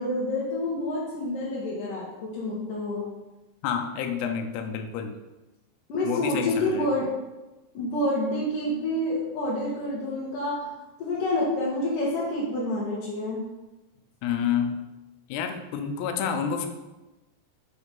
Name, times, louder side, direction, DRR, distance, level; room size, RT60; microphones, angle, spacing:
voice 1, 0.0-3.0 5.9-7.1 7.7-10.7 11.0-13.4, left 1 dB, 65° left, -7 dB, 2.5 m, -28 dB
voice 2, 3.6-5.2 6.0-6.9 14.2-14.8 15.3-16.7, left 7 dB, 85° left, 6 dB, 2.8 m, -29 dB
6.5 x 4.8 x 5.2 m, 1.1 s
omnidirectional pair, 4.7 m